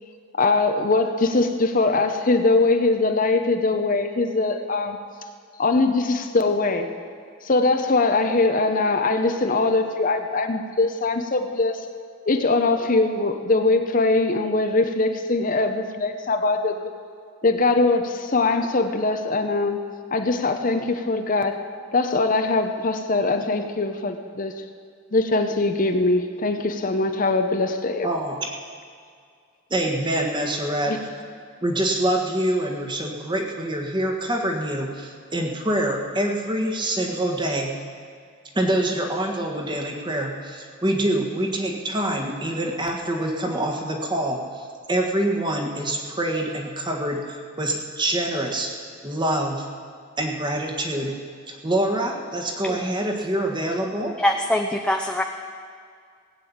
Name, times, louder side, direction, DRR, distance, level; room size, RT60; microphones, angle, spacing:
voice 1, 0.4-5.0 5.6-6.9 7.4-11.8 12.3-16.9 17.4-19.8 20.1-21.6 21.9-24.6 25.1-28.1 30.9-31.0, left 3 dB, 40° left, 7 dB, 0.8 m, -22 dB
voice 2, 28.0-28.4 29.7-31.0 31.6-37.7 38.5-48.7 49.0-49.6 50.2-51.2 51.5-54.1, right 1 dB, 20° right, 2 dB, 1.6 m, -25 dB
voice 3, 52.6-53.0 54.2-55.2, left 1 dB, 5° left, 4 dB, 0.5 m, -23 dB
17.5 x 7.6 x 8.6 m, 2.2 s
head